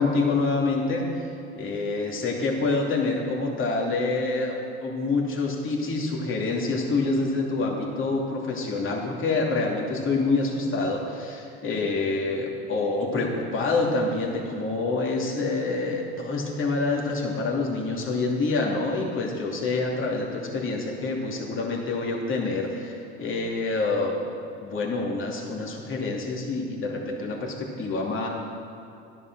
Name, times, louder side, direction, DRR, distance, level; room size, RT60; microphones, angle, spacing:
voice 1, 0.0-24.3 24.6-28.3, left 3 dB, 40° left, -1 dB, 2.9 m, -27 dB
11.5 x 11.0 x 6.2 m, 2.7 s
supercardioid pair, 90°, 30 cm